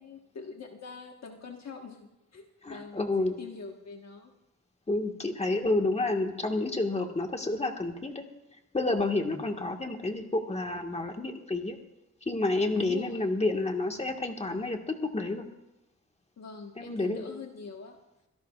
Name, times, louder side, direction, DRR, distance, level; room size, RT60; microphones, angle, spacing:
voice 1, 0.0-4.3 9.4-9.7 12.7-13.2 16.4-18.0, left 5 dB, 60° left, 2 dB, 1.4 m, -44 dB
voice 2, 2.6-3.3 4.9-8.3 8.7-11.8 12.2-15.5 16.8-17.3, left 2 dB, 20° left, 3 dB, 1.6 m, -29 dB
25.5 x 17.5 x 2.4 m, 0.94 s
wide cardioid pair, 150°, 30 cm